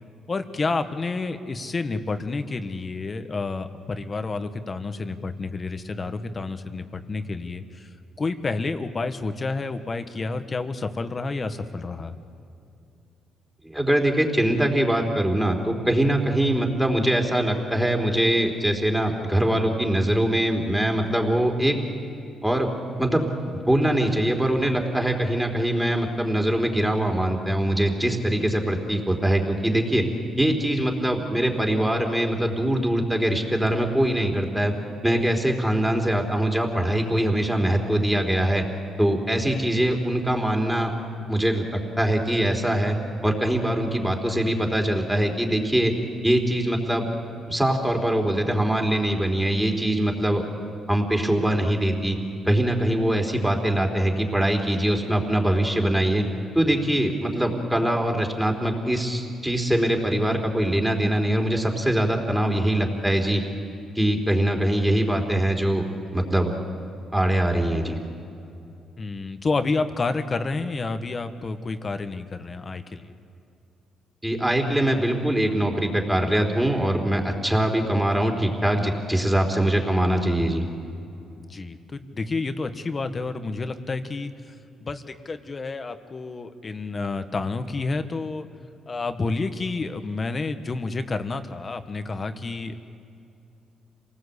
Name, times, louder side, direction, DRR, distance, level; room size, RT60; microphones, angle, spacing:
voice 1, 0.3-12.1 69.0-73.1 81.5-88.5 88.9-92.8, left 3 dB, 35° left, 9 dB, 1.4 m, -29 dB
voice 2, 13.6-21.7 22.4-22.7 23.0-23.3 23.7-30.1 30.4-34.8 35.0-38.6 39.0-40.9 41.3-43.0 43.2-45.9 46.2-47.1 47.5-50.4 50.9-52.2 52.5-56.2 56.5-63.4 64.0-65.8 66.1-66.5 67.1-68.0 74.2-80.7, right 1 dB, 5° right, 2 dB, 3.6 m, -23 dB
27.5 x 19.0 x 8.3 m, 2.6 s
cardioid pair, 90°, 0 cm